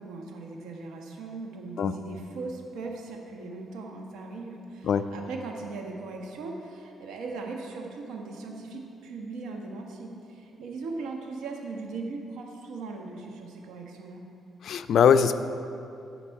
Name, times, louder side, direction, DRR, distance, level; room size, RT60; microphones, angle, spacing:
voice 1, 0.0-14.2, right 3 dB, 85° right, 1 dB, 1.3 m, -39 dB
voice 2, 14.6-15.3, left 7 dB, 65° left, 11 dB, 0.5 m, -21 dB
16.0 x 5.9 x 4.8 m, 2.6 s
cardioid pair, 90°, 0 cm